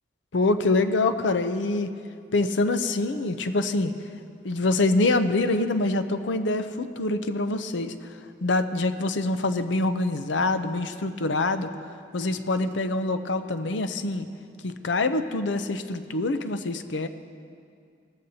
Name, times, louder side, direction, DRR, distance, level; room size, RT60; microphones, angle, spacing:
voice 1, 0.3-1.9 2.3-3.9 4.4-8.0 8.4-11.7 12.1-14.3 14.6-17.1, left 2 dB, 75° left, 10 dB, 0.6 m, -25 dB
18.5 x 14.5 x 2.8 m, 2.3 s
head